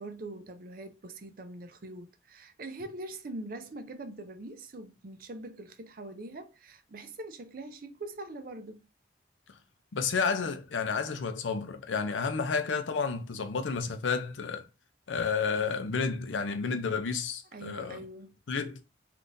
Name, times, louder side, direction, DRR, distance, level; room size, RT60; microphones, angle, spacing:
voice 1, 0.0-8.9 17.5-18.3, right 2 dB, 50° right, 0.5 m, -43 dB
voice 2, 9.9-14.7 15.1-18.0 18.5-18.8, left 5 dB, 90° left, 0.5 m, -31 dB
3.6 x 2.4 x 2.6 m
head